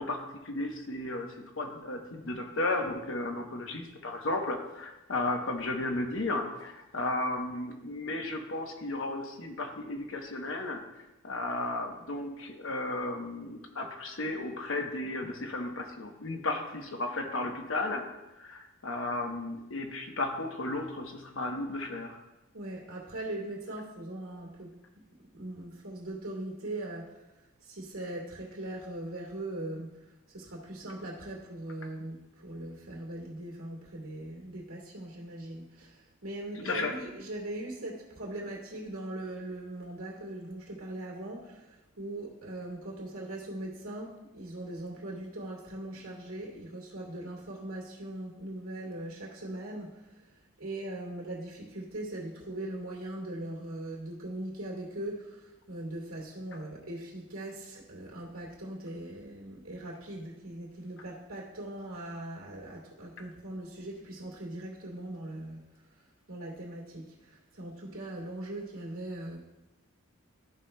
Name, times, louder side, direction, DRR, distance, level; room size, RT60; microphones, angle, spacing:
voice 1, 0.0-10.8 11.2-18.0 18.4-22.2 36.5-37.0, left 2 dB, 65° left, 3 dB, 0.9 m, -34 dB
voice 2, 22.5-24.8 25.3-27.2 27.6-29.9 30.3-50.0 50.6-65.6 66.3-69.4, right 1 dB, 75° right, -2 dB, 2.4 m, -40 dB
13.0 x 5.6 x 2.2 m, 1.0 s
head